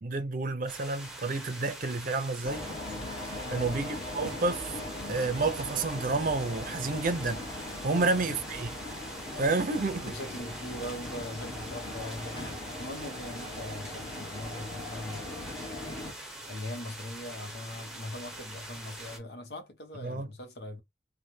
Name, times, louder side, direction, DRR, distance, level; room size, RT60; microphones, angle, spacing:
voice 1, 0.0-2.6 3.3-4.8 5.1-7.5 7.8-8.7 9.4-10.2 20.0-20.3, right 3 dB, 50° right, 0.6 m, -30 dB
sound 1, 0.7-19.2, right 1 dB, 5° right, 0.9 m, -44 dB
sound 2, 2.4-16.1, left 1 dB, 25° left, 1.3 m, -40 dB
voice 2, 3.4-4.0 7.9-8.1 9.3-9.7 10.0-16.0 16.4-20.8, left 1 dB, 65° left, 1.0 m, -41 dB
3.3 x 2.2 x 2.7 m
head